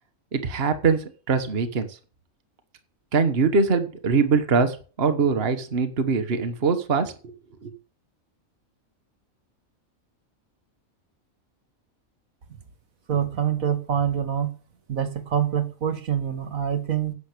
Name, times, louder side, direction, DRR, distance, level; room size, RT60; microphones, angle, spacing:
voice 1, 0.3-2.0 3.1-7.3 7.6-7.7, right 5 dB, 45° right, 8 dB, 1.5 m, -23 dB
voice 2, 13.1-14.5 14.9-17.1, right 9 dB, 75° right, 10 dB, 2.0 m, -25 dB
10.5 x 7.9 x 6.7 m, 0.37 s
omnidirectional pair, 1.4 m